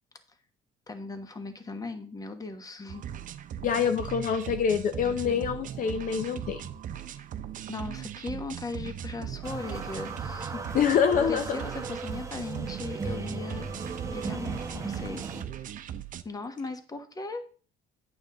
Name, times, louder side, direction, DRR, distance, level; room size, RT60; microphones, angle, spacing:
voice 1, 0.9-3.0 3.7-3.8 5.2-5.5 7.1-7.2 7.7-11.0 11.3-15.3 15.5-15.7 16.2-17.4, left 3 dB, 20° left, 8 dB, 1.2 m, -38 dB
sound 1, 2.9-16.2, right 9 dB, 50° right, 0.6 m, -39 dB
voice 2, 3.6-6.7 10.7-11.5, left 7 dB, 55° left, 9 dB, 0.7 m, -26 dB
sound 2, 9.4-15.4, right 3 dB, 20° right, 1.1 m, -37 dB
8.9 x 7.0 x 3.8 m, 0.41 s
cardioid pair, 110°, 17 cm